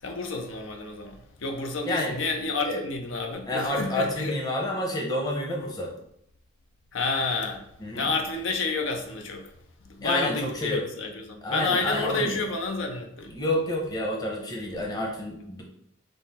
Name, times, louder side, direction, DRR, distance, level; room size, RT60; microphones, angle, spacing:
voice 1, 0.0-4.4 6.9-7.6 7.9-9.5 9.9-13.3, left 3 dB, 80° left, 4 dB, 0.6 m, -30 dB
voice 2, 3.5-6.0 7.8-8.1 10.0-10.8 11.4-12.4 13.3-15.6, left 1 dB, 20° left, -1 dB, 0.8 m, -29 dB
5.4 x 2.1 x 4.1 m, 0.75 s
head